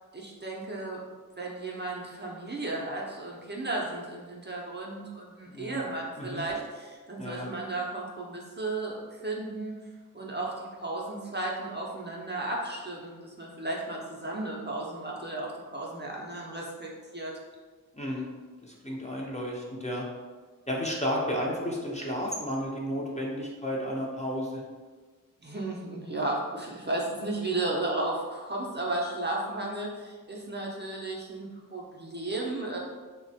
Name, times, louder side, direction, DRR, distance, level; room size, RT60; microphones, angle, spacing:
voice 1, 0.1-1.0 1.4-9.7 10.1-17.3 25.4-32.8, right 2 dB, 30° right, -3 dB, 0.5 m, -34 dB
voice 2, 5.5-5.8 6.2-6.4 7.2-7.5 17.9-18.3 18.6-20.0 20.7-24.6, equal, 20° left, -3 dB, 0.5 m, -32 dB
3.1 x 2.1 x 2.6 m, 1.4 s
wide cardioid pair, 40°, 34 cm